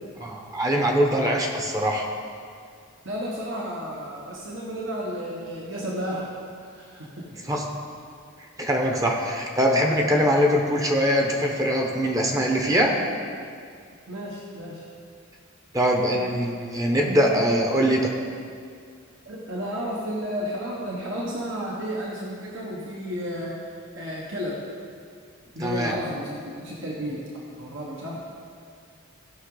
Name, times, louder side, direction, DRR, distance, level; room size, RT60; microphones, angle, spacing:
voice 1, 0.2-2.1 7.4-7.6 8.6-12.9 15.7-18.1 25.6-25.9, equal, 15° right, 1 dB, 0.9 m, -22 dB
voice 2, 3.0-6.3 6.6-7.3 14.1-14.8 16.9-17.5 19.2-23.6 23.9-24.6 25.5-27.2 27.6-28.2, equal, 60° right, -4 dB, 1.3 m, -32 dB
16.0 x 6.0 x 3.9 m, 2.2 s
head